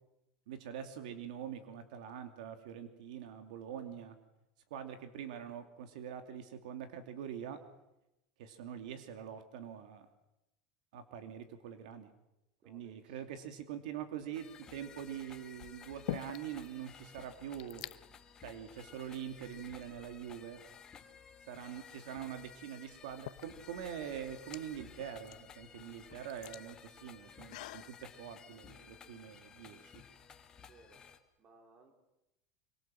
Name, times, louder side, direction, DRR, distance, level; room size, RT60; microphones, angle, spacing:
voice 1, 0.5-4.2 4.7-7.6 8.4-10.1 10.9-12.1 12.7-17.8 18.4-20.6 21.5-30.0, right 9 dB, 75° right, 8 dB, 2.7 m, -44 dB
voice 2, 12.6-13.5 30.6-31.1 31.4-31.9, right 3 dB, 25° right, 5 dB, 4.3 m, -62 dB
sound 1, 14.3-31.2, left 7 dB, 15° left, 1.8 m, -55 dB
sound 2, 14.4-14.8 15.6-16.7 17.0-17.1 17.3-18.0 18.8-18.9 19.5-20.4 22.1-22.2 22.9-27.9, left 18 dB, 70° left, 0.9 m, -47 dB
25.5 x 24.0 x 7.7 m, 0.90 s
supercardioid pair, 175°, 4 cm